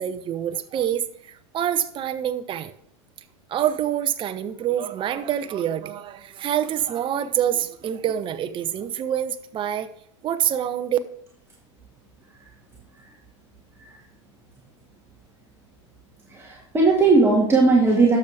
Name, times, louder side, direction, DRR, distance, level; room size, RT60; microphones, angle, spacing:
voice 1, 0.0-2.7 3.5-9.9 10.2-11.0, right 10 dB, 35° right, 11 dB, 0.9 m, -26 dB
voice 2, 16.3-18.2, right 3 dB, 15° right, -3 dB, 1.9 m, -18 dB
11.5 x 7.1 x 3.5 m, 0.66 s
hypercardioid pair, 105°, 16 cm